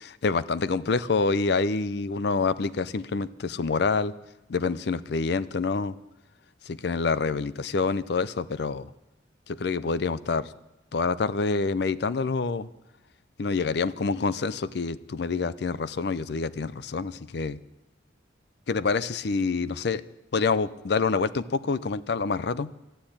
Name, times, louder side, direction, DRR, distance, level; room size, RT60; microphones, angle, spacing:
voice 1, 0.0-4.1 4.5-5.9 6.7-8.9 9.5-10.5 10.9-12.7 13.4-17.6 18.7-20.0 20.3-22.7, left 4 dB, 55° left, 17 dB, 0.5 m, -27 dB
12.5 x 9.9 x 8.6 m, 0.99 s
head